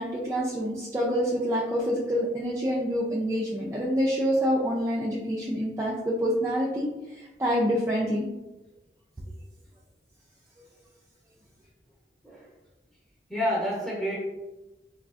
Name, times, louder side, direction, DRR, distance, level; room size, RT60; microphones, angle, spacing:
voice 1, 0.0-8.3, equal, 15° right, -5 dB, 0.3 m, -27 dB
voice 2, 13.3-14.2, equal, ahead, -4 dB, 0.8 m, -28 dB
3.5 x 2.3 x 2.4 m, 1.0 s
head